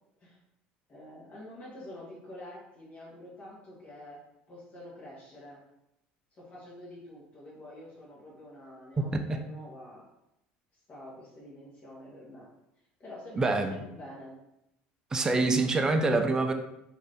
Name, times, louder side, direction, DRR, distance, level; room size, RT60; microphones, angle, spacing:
voice 1, 0.9-4.2 4.5-5.6 6.3-10.1 10.9-12.5 13.0-14.4, left 1 dB, 35° left, -5 dB, 1.0 m, -47 dB
voice 2, 9.0-9.4 13.4-13.7 15.1-16.5, right 3 dB, 15° right, 5 dB, 0.3 m, -26 dB
2.6 x 2.4 x 3.4 m, 0.84 s
cardioid pair, 120°, 4 cm